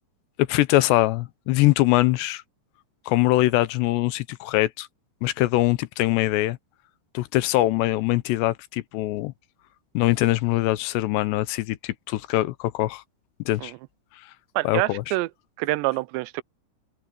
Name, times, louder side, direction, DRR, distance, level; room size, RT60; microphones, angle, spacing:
voice 1, 0.5-2.4 3.1-4.9 5.2-6.6 7.1-9.3 9.9-13.0 13.5-13.7 14.6-15.1, left 17 dB, 85° left, 3.0 m, -22 dB
voice 2, 14.6-15.3 15.6-16.4, right 21 dB, 90° right, 2.9 m, -26 dB
open air
omnidirectional pair, 4.9 m